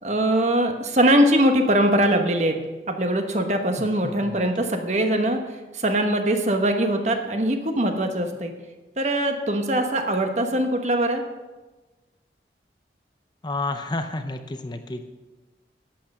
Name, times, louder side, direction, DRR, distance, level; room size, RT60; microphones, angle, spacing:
voice 1, 0.0-2.6 2.9-8.5 9.0-11.2, right 1 dB, 40° right, 5 dB, 1.1 m, -22 dB
voice 2, 3.8-4.4 13.4-15.0, left 2 dB, 25° left, 7 dB, 0.6 m, -31 dB
12.0 x 8.4 x 5.5 m, 1.2 s
head